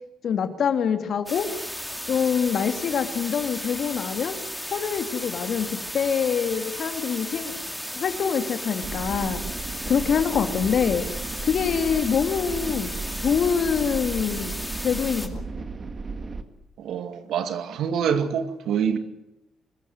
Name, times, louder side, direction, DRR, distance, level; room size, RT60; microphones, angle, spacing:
voice 1, 0.2-1.5 2.1-4.4 4.7-7.6 7.9-9.4 9.9-11.0 11.4-12.9 13.2-15.4, left 7 dB, 60° left, 2.6 m, -25 dB
sound 1, 1.3-15.3, equal, 5° left, 2.5 m, -35 dB
sound 2, 8.8-16.4, right 4 dB, 40° right, 2.0 m, -35 dB
voice 2, 16.8-19.0, right 7 dB, 75° right, 2.2 m, -26 dB
25.0 x 14.5 x 9.5 m
cardioid pair, 90°, 0 cm